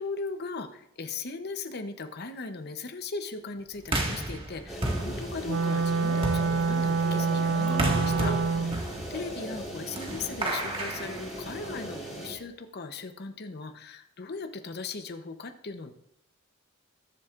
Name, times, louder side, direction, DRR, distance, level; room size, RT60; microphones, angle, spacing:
voice 1, 0.0-15.9, left 4 dB, 55° left, 7 dB, 0.8 m, -38 dB
sound 1, 3.8-11.9, right 1 dB, 30° right, 1.7 m, -33 dB
sound 2, 4.7-12.3, right 1 dB, ahead, 3.3 m, -39 dB
Wind instrument woodwind instrument, 5.4-8.8, right 4 dB, 85° right, 0.6 m, -26 dB
20.0 x 7.3 x 2.5 m, 0.79 s
head